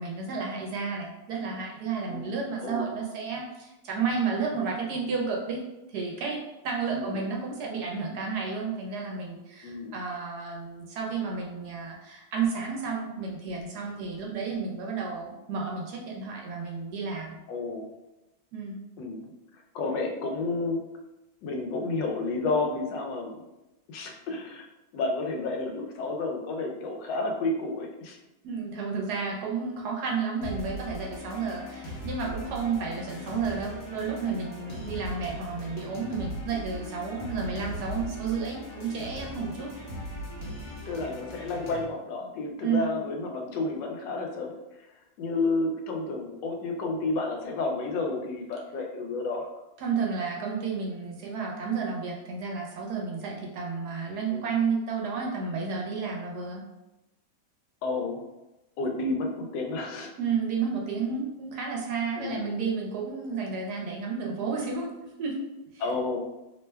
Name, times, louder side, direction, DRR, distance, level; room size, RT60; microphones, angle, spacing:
voice 1, 0.0-5.6 5.9-17.4 18.5-18.8 28.4-39.7 42.6-42.9 49.8-56.6 60.2-64.9 65.2-65.4, right 5 dB, 70° right, -1 dB, 1.1 m, -31 dB
voice 2, 9.6-10.0 17.5-17.9 19.0-19.3 19.7-20.8 21.4-23.5 23.9-24.6 24.9-28.2 36.4-36.5 39.5-39.6 40.9-44.5 45.2-49.5 54.3-54.5 57.8-58.2 58.8-60.1 62.2-62.4 65.8-66.2, left 3 dB, 90° left, 3 dB, 1.3 m, -31 dB
sound 1, 30.4-41.8, left 1 dB, 65° left, 1.3 m, -39 dB
3.1 x 2.2 x 3.3 m, 0.98 s
omnidirectional pair, 1.9 m